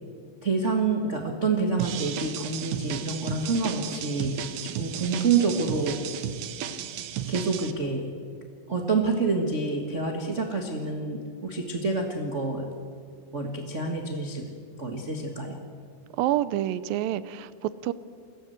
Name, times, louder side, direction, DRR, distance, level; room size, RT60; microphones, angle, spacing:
voice 1, 0.4-6.0 7.3-8.1 8.7-12.7 13.3-14.5 14.8-15.6, right 4 dB, 40° right, 2 dB, 1.1 m, -27 dB
sound 1, 1.8-7.7, right 9 dB, 65° right, 2.1 m, -34 dB
voice 2, 16.2-17.9, right 13 dB, 90° right, 16 dB, 2.5 m, -27 dB
22.0 x 17.0 x 8.0 m, 2.3 s
omnidirectional pair, 3.9 m